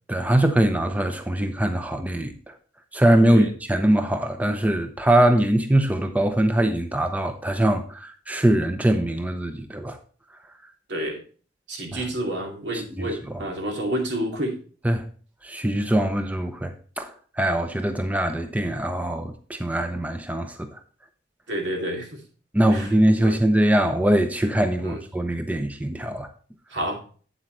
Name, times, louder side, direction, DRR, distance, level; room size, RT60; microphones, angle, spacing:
voice 1, 0.1-2.5 2.9-10.0 11.9-12.0 12.7-13.4 14.8-15.1 15.4-20.8 22.5-26.3, right 1 dB, 10° right, 0.6 m, -22 dB
voice 2, 10.9-11.2 11.7-14.6 21.5-22.2 22.7-22.9 23.2-23.4 24.8-25.0 26.7-27.0, right 1 dB, 80° right, 2.6 m, -29 dB
8.7 x 7.9 x 3.0 m
head